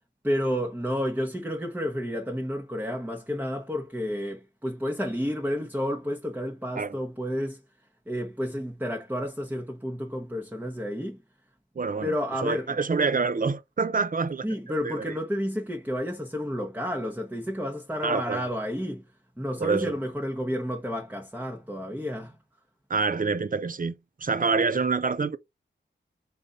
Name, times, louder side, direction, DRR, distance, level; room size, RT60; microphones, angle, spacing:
voice 1, 0.2-7.6 8.1-11.2 12.0-12.7 14.4-19.1 19.4-22.4, equal, 10° right, 1.0 m, -31 dB
voice 2, 11.8-12.1 12.4-14.5 14.8-15.2 18.0-18.5 19.6-20.0 22.9-25.4, right 4 dB, 45° right, 0.6 m, -27 dB
4.0 x 3.5 x 3.7 m
wide cardioid pair, 60°, 20 cm